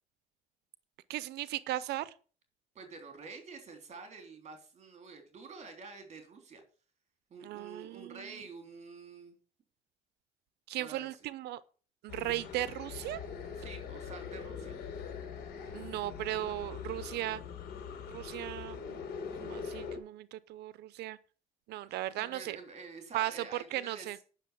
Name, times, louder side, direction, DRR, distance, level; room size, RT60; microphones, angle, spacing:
voice 1, 1.1-2.1 7.4-8.2 10.7-11.6 12.0-13.2 15.7-17.4 18.1-19.0 19.4-21.2 21.7-22.6 23.1-23.4 23.7-24.2, right 15 dB, 75° right, 0.7 m, -37 dB
voice 2, 2.8-6.6 7.3-9.4 10.8-11.2 13.6-14.8 22.2-24.1, right 4 dB, 40° right, 3.5 m, -48 dB
sound 1, 12.1-20.0, left 6 dB, 75° left, 3.6 m, -42 dB
10.0 x 6.5 x 7.0 m
cardioid pair, 110°, 17 cm